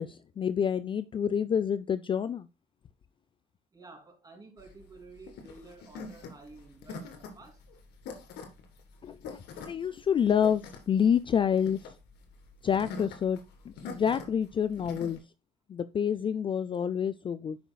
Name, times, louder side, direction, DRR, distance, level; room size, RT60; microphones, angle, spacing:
voice 1, 0.0-2.5 9.0-12.0 12.6-13.4 13.7-15.2 15.7-17.6, left 8 dB, 30° left, 0.4 m, -28 dB
voice 2, 3.7-7.6, right 3 dB, 20° right, 2.7 m, -51 dB
sound 1, 4.6-15.2, left 4 dB, 80° left, 2.0 m, -44 dB
11.0 x 5.1 x 2.3 m
cardioid pair, 110°, 17 cm